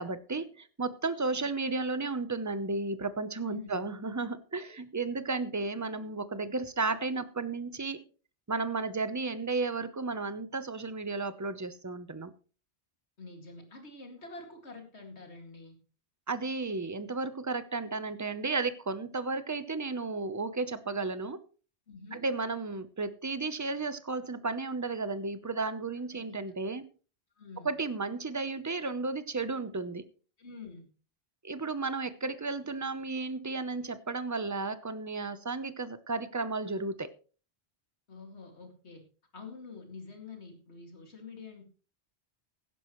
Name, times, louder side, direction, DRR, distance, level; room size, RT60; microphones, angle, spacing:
voice 1, 0.0-8.0 8.5-12.3 16.3-21.4 22.1-26.8 27.6-30.0 31.4-37.1, right 3 dB, 20° right, 0.7 m, -33 dB
voice 2, 3.5-3.8 4.6-4.7 13.2-15.8 21.9-22.2 26.0-26.4 27.4-27.7 30.4-30.9 38.1-39.0 39.3-41.7, left 4 dB, 75° left, 2.7 m, -47 dB
16.0 x 11.0 x 3.1 m
omnidirectional pair, 1.1 m